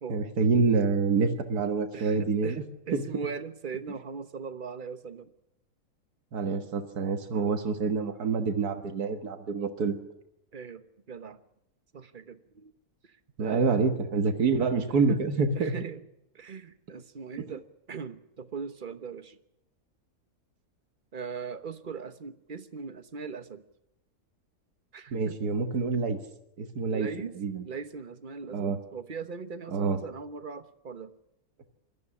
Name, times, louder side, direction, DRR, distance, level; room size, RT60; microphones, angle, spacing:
voice 1, 0.1-2.6 2.9-3.0 6.3-10.0 13.4-15.7 25.1-26.2 26.6-27.1 27.4-27.6 28.5-28.8 29.7-30.0, right 4 dB, 80° right, 7 dB, 2.0 m, -27 dB
voice 2, 1.9-5.3 7.3-7.6 10.5-11.4 11.9-12.7 13.1-14.0 15.1-15.2 15.5-16.0 16.3-17.6 17.9-19.4 21.1-23.6 24.9-25.4 26.9-27.4 27.6-31.1, right 5 dB, 35° right, 11 dB, 1.1 m, -40 dB
21.5 x 14.0 x 9.8 m, 0.84 s
omnidirectional pair, 1.6 m